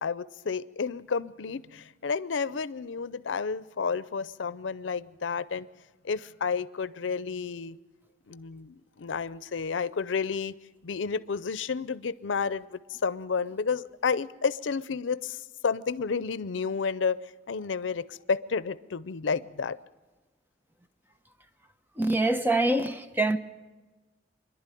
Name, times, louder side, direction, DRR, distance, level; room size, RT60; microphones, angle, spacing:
voice 1, 0.0-5.7 6.0-7.8 8.3-10.6 10.8-17.2 17.5-19.8, left 5 dB, 90° left, 0.5 m, -31 dB
voice 2, 22.0-23.4, right 2 dB, 10° right, 0.9 m, -25 dB
25.5 x 11.5 x 9.1 m
head